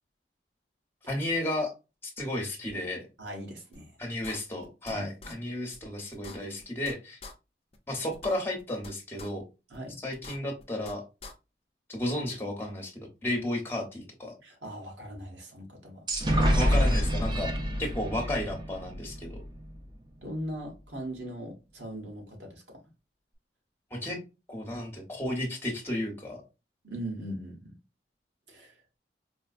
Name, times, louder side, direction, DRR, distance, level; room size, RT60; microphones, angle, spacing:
voice 1, 1.1-1.7 2.2-3.0 4.0-7.2 7.9-9.4 10.0-11.0 11.9-14.3 16.5-19.4 23.9-24.2 24.5-26.4, left 1 dB, 15° left, 1.0 m, -33 dB
voice 2, 3.2-4.0 4.9-5.3 9.7-10.0 14.4-16.1 20.2-22.8 26.8-27.8 28.5-28.7, equal, 90° right, 1.3 m, -40 dB
sound 1, 3.7-3.8 4.2-4.9 5.2-5.3 5.7-5.8 6.1-6.9 7.2-7.3 7.7-7.8 8.1-8.9 9.2-9.3 9.7-9.8 10.1-10.9 11.2-11.3, left 3 dB, 35° left, 0.5 m, -44 dB
sound 2, 16.1-19.8, equal, 25° right, 0.6 m, -27 dB
4.4 x 2.2 x 2.4 m
head